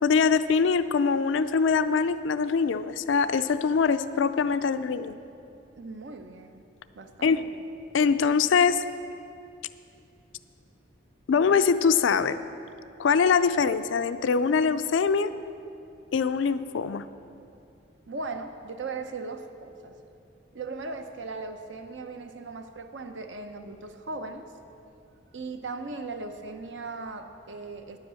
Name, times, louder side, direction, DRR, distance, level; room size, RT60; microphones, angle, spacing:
voice 1, 0.0-5.2 7.2-7.4 7.9-8.8 11.3-12.4 13.0-15.3 16.1-17.0, left 5 dB, 80° left, 12 dB, 0.4 m, -23 dB
voice 2, 5.8-7.6 18.1-20.0 20.5-24.4 25.3-28.0, right 3 dB, 75° right, 7 dB, 0.8 m, -38 dB
10.0 x 8.0 x 6.9 m, 2.6 s
head